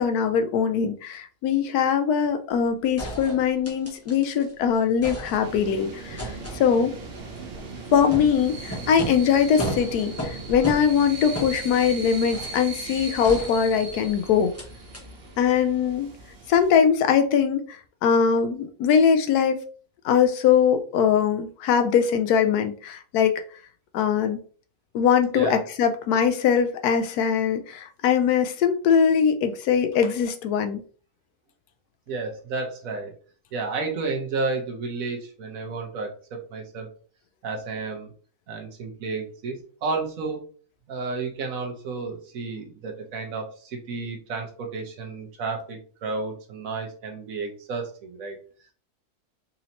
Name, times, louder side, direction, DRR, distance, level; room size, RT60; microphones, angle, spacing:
voice 1, 0.0-6.9 7.9-14.5 15.4-16.1 16.5-17.6 18.0-19.6 20.0-23.4 23.9-24.4 24.9-30.8, left 7 dB, 80° left, 7 dB, 1.1 m, -21 dB
sound 1, 2.5-2.6 3.0-4.5 4.8-5.8 6.2-12.7 13.2-14.1 14.5-14.7 14.9-15.0, equal, 15° left, 0.5 m, -36 dB
sound 2, 5.4-16.7, right 3 dB, 45° right, 0.9 m, -38 dB
voice 2, 32.1-33.1 33.5-36.9 37.4-38.1 38.5-40.4 40.9-48.4, right 4 dB, 65° right, 2 dB, 1.1 m, -32 dB
4.1 x 2.7 x 2.8 m, 0.43 s
omnidirectional pair, 1.6 m